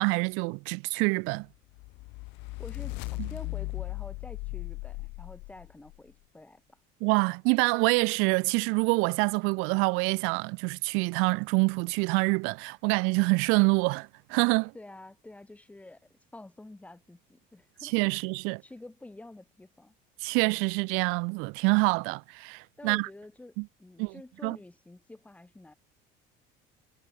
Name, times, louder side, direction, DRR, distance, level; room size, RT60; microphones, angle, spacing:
voice 1, 0.0-1.5 3.2-3.3 7.0-14.7 17.8-18.6 20.2-23.1 23.6-23.7 24.0-24.1 24.4-24.6, right 32 dB, 80° right, 0.6 m, -26 dB
sound 1, 1.7-6.0, left 25 dB, 60° left, 0.4 m, -37 dB
voice 2, 2.6-6.8 14.7-18.3 18.6-19.9 22.8-25.7, left 2 dB, 5° left, 7.7 m, -49 dB
cardioid pair, 175°, 21 cm